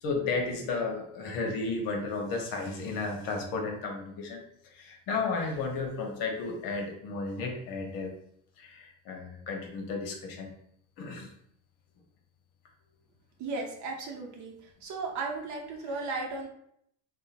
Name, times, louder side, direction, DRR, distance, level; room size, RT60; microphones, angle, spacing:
voice 1, 0.0-4.4 4.7-8.1 8.6-10.5 11.0-11.3, left 3 dB, 60° left, 2 dB, 0.8 m, -33 dB
voice 2, 13.4-14.5 14.8-16.5, right 3 dB, 45° right, 0 dB, 0.8 m, -35 dB
2.8 x 2.1 x 2.5 m, 0.70 s
hypercardioid pair, 85°, 40 cm